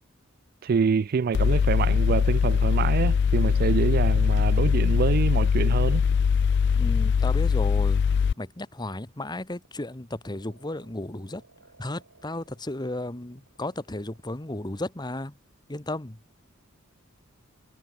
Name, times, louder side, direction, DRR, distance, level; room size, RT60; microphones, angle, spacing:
voice 1, 0.6-6.0, right 6 dB, 45° right, 0.3 m, -26 dB
Mechanical fan, 1.3-8.3, left 6 dB, 55° left, 0.3 m, -22 dB
sound 1, 6.0-14.9, right 3 dB, 90° right, 5.9 m, -60 dB
voice 2, 6.8-8.0 8.4-11.4 11.8-15.3 15.7-16.2, left 1 dB, 20° left, 1.3 m, -34 dB
head